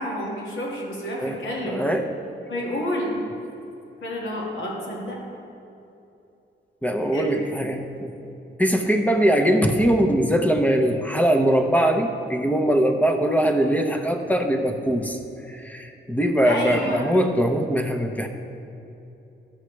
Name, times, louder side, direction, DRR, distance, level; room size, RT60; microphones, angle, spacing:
voice 1, 0.0-1.8 2.5-3.2 4.0-5.2 7.1-7.3 16.4-17.1, left 1 dB, 90° left, -4 dB, 2.0 m, -29 dB
voice 2, 1.6-2.0 6.8-8.1 8.6-15.2 15.5-18.3, right 1 dB, 5° left, 4 dB, 0.8 m, -21 dB
11.5 x 6.4 x 3.3 m, 2.8 s
cardioid pair, 80°, 20 cm